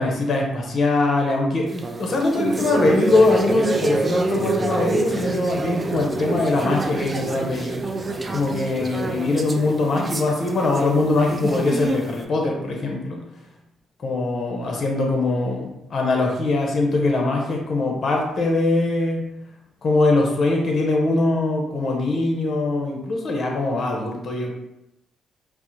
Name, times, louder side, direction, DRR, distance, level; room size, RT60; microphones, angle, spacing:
voice 1, 0.0-7.8 8.3-13.2 14.0-19.2 19.8-24.5, left 2 dB, 50° left, 0 dB, 0.9 m, -22 dB
sound 1, 1.7-12.2, right 2 dB, 25° right, 0.4 m, -27 dB
4.6 x 2.1 x 2.8 m, 0.88 s
cardioid pair, 90°, 0 cm